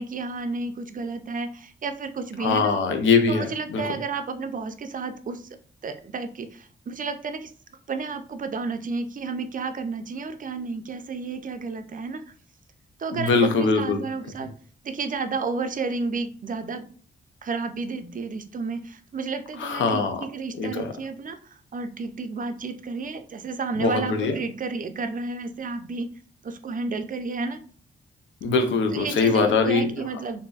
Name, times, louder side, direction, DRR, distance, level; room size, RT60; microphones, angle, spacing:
voice 1, 0.0-2.7 3.3-5.5 5.8-7.5 7.9-12.2 13.0-14.5 14.8-16.9 17.4-26.1 26.4-27.6 28.9-30.4, right 4 dB, 45° right, 9 dB, 0.5 m, -31 dB
voice 2, 2.4-3.8 13.1-14.1 14.4-14.5 19.6-20.2 20.6-20.9 23.7-24.4 28.4-29.9, left 4 dB, 80° left, 6 dB, 0.7 m, -22 dB
3.8 x 2.7 x 2.4 m, 0.43 s
cardioid pair, 70°, 19 cm